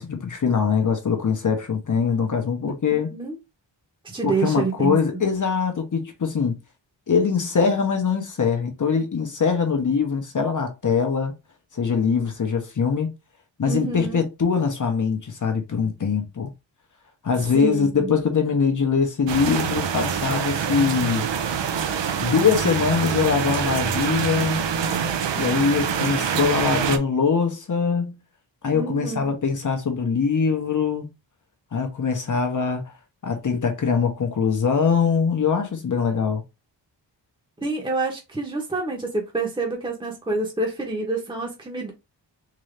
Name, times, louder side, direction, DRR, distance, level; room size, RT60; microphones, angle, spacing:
voice 1, 0.0-3.1 4.2-6.6 7.1-11.3 11.7-13.1 13.6-16.5 17.2-21.3 22.2-24.6 25.4-28.2 28.6-31.1 31.7-32.8 33.2-36.4, left 6 dB, 40° left, 0.9 m, -22 dB
voice 2, 2.9-3.4 4.0-5.0 13.7-14.2 17.5-18.1 28.7-29.3 37.6-41.9, right 3 dB, 10° right, 1.0 m, -27 dB
sound 1, 19.3-27.0, right 7 dB, 70° right, 0.7 m, -25 dB
3.8 x 2.7 x 3.2 m
wide cardioid pair, 120°, 46 cm